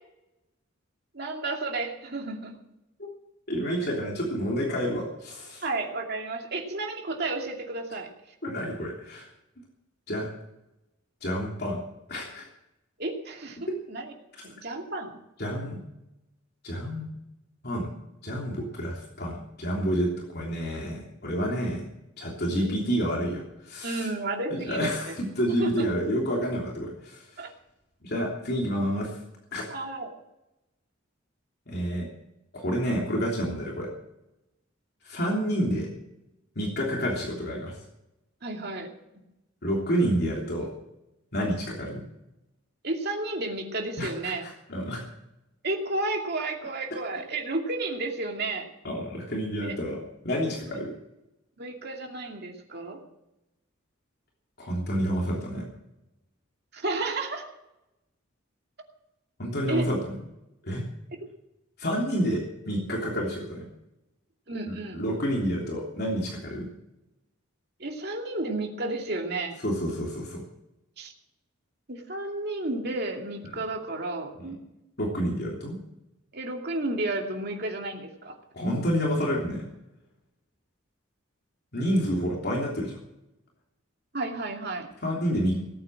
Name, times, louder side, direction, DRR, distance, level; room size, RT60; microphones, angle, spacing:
voice 1, 1.1-2.5 5.6-8.1 13.0-13.6 13.9-14.1 14.4-15.2 22.4-22.7 23.8-24.9 25.6-25.9 27.4-27.5 29.7-30.1 38.4-38.9 42.8-44.4 45.6-48.7 49.6-49.8 50.7-50.8 51.6-53.0 56.7-57.5 59.7-59.9 64.5-65.0 67.8-69.6 71.0-71.1 71.9-74.6 76.3-78.4 84.1-84.9, right 2 dB, 50° right, 2 dB, 2.6 m, -32 dB
voice 2, 3.5-5.6 8.4-9.3 10.1-10.3 11.2-11.8 12.1-12.5 15.4-15.8 16.6-17.1 17.6-17.9 18.2-21.8 22.2-24.1 24.5-27.5 28.0-29.2 29.5-29.6 31.7-32.1 32.5-33.9 35.0-35.9 36.5-37.8 39.6-40.7 41.3-42.0 44.0-45.0 48.8-50.9 54.6-55.6 59.4-60.0 60.6-60.8 61.8-63.7 64.7-66.7 69.6-70.4 74.4-74.6 75.0-75.8 78.5-79.6 81.7-83.0 85.0-85.6, equal, 50° left, -2 dB, 3.2 m, -29 dB
18.5 x 8.9 x 7.6 m, 0.91 s
head